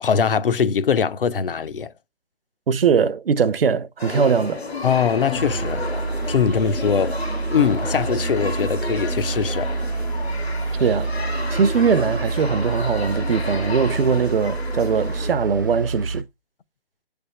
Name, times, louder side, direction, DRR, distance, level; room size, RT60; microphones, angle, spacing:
voice 1, 0.0-1.9 4.8-5.9 6.3-7.2 7.5-9.7, left 7 dB, 60° left, 0.6 m, -21 dB
voice 2, 2.7-4.6 10.8-11.1 11.5-16.2, right 6 dB, 65° right, 0.6 m, -21 dB
sound 1, 4.0-15.3, left 3 dB, 85° left, 1.5 m, -32 dB
sound 2, 5.3-16.2, right 3 dB, 20° right, 0.4 m, -27 dB
6.5 x 3.5 x 5.3 m
figure-of-eight pair, 150°, 31 cm